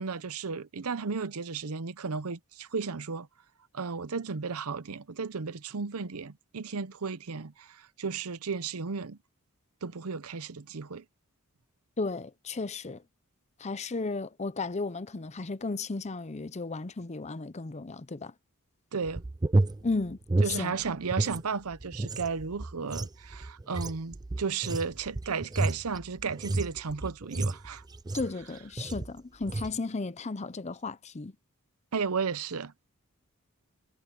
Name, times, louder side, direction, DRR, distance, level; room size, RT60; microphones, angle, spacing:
voice 1, 0.0-3.3 3.7-9.2 9.8-11.0 18.9-19.2 20.4-27.8 31.9-32.7, right 5 dB, 85° right, 0.8 m, -34 dB
voice 2, 12.0-13.0 13.6-18.3 19.8-20.2 20.5-20.8 28.1-31.3, left 3 dB, 30° left, 0.6 m, -34 dB
sound 1, 19.1-21.4 21.7-28.4 28.8-29.1 29.4-29.8, right 2 dB, 20° right, 0.4 m, -31 dB
head